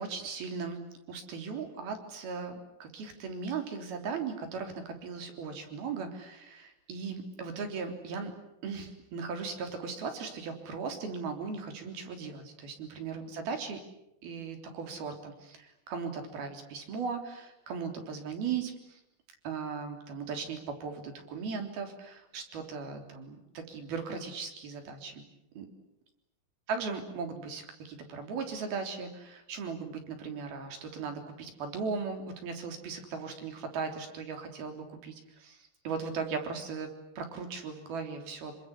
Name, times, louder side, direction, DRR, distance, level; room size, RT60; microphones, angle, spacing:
voice 1, 0.0-8.3 8.6-13.8 14.2-19.0 19.4-25.2 25.6-25.7 26.7-35.6 35.9-38.5, right 5 dB, 60° right, 5 dB, 5.2 m, -38 dB
27.5 x 25.5 x 8.4 m, 0.84 s
omnidirectional pair, 5.2 m